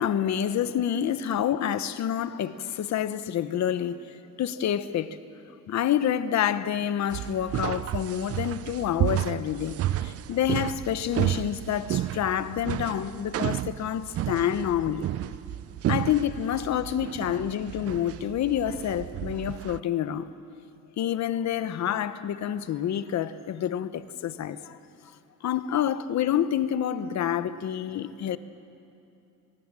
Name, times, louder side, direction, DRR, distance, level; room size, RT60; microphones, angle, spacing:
voice 1, 0.0-5.2 5.7-15.1 15.9-20.3 21.0-24.8 25.4-28.4, left 10 dB, 65° left, 1.0 m, -28 dB
sound 1, 7.1-19.8, right 13 dB, 50° right, 0.4 m, -31 dB
24.0 x 19.5 x 7.5 m
cardioid pair, 90°, 30 cm